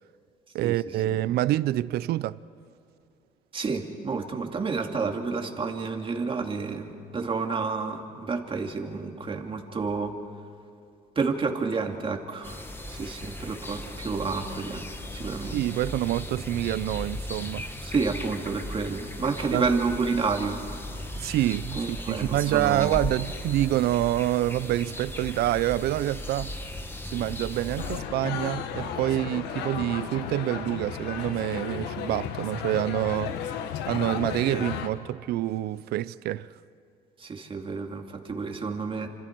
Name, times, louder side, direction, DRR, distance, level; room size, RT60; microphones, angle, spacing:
voice 1, 0.5-2.4 15.5-17.7 19.5-19.7 21.2-26.5 27.1-33.6 33.9-36.5, right 14 dB, 70° right, 0.5 m, -27 dB
voice 2, 3.5-10.1 11.2-12.6 12.9-14.8 15.1-15.6 17.8-20.6 21.8-23.0 34.5-34.7 37.2-39.1, right 4 dB, 30° right, 2.4 m, -30 dB
sound 1, 12.4-28.0, left 1 dB, 15° left, 1.6 m, -37 dB
sound 2, 27.8-34.9, left 8 dB, 90° left, 1.4 m, -34 dB
28.5 x 26.5 x 4.6 m
cardioid pair, 110°, 17 cm